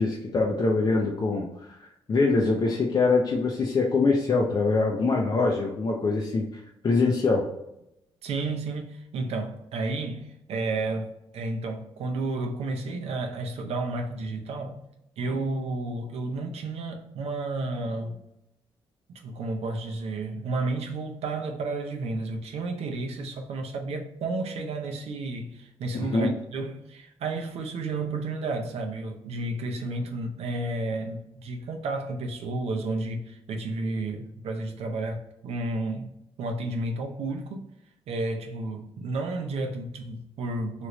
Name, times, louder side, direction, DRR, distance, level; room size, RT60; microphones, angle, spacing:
voice 1, 0.0-6.4 6.8-7.5 26.0-26.3, left 3 dB, 40° left, 0.6 m, -24 dB
voice 2, 8.2-14.8 15.2-18.2 19.1-37.7 38.1-40.9, right 2 dB, 75° right, 0.6 m, -32 dB
3.2 x 2.5 x 3.0 m
cardioid pair, 80°, 11 cm